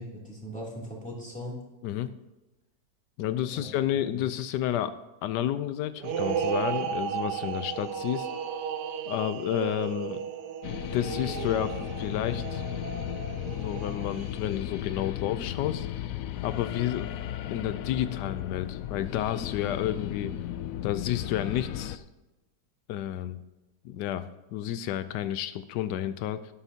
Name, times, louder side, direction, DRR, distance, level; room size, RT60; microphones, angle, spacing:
voice 1, 0.0-1.6 3.5-4.2, equal, 5° left, -4 dB, 2.8 m, -40 dB
voice 2, 3.2-4.9 5.2-8.3 9.1-10.2 10.9-12.6 13.5-15.9 16.4-17.1 17.5-20.3 20.8-22.0 22.9-23.4 23.8-26.4, left 11 dB, 90° left, 13 dB, 1.2 m, -31 dB
sound 1, 6.0-14.6, right 8 dB, 85° right, 1.4 m, -34 dB
sound 2, 10.6-22.0, left 11 dB, 70° left, 0.8 m, -35 dB
12.5 x 11.5 x 2.8 m, 1.0 s
omnidirectional pair, 1.8 m